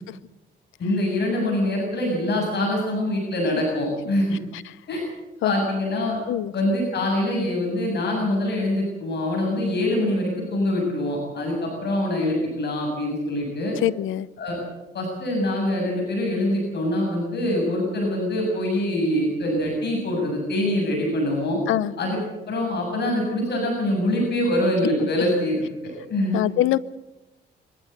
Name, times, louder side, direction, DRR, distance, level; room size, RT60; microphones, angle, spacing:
voice 1, 0.8-4.4 4.9-5.0 5.4-6.2 6.5-13.8 14.4-14.6 14.9-21.6 22.0-22.2 22.5-26.4, left 1 dB, 60° left, 0 dB, 7.1 m, -24 dB
voice 2, 13.8-14.3 21.7-21.9 26.3-26.8, left 13 dB, 85° left, 19 dB, 0.8 m, -23 dB
23.5 x 14.0 x 8.1 m, 1.0 s
cardioid pair, 90°, 20 cm